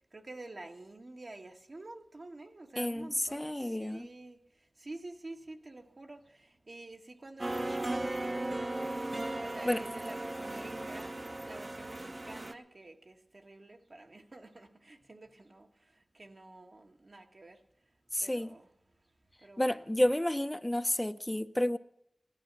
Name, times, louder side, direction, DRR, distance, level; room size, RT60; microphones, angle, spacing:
voice 1, 0.1-4.4 4.8-11.2 11.4-17.6 18.2-18.7 19.4-19.9, right 2 dB, 70° right, 1.6 m, -49 dB
voice 2, 2.8-4.1 9.6-9.8 18.1-18.6 19.6-21.8, left 1 dB, 20° left, 0.7 m, -30 dB
sound 1, 7.4-12.5, right 1 dB, 50° right, 0.9 m, -37 dB
17.0 x 11.5 x 6.0 m
wide cardioid pair, 40°, 0 cm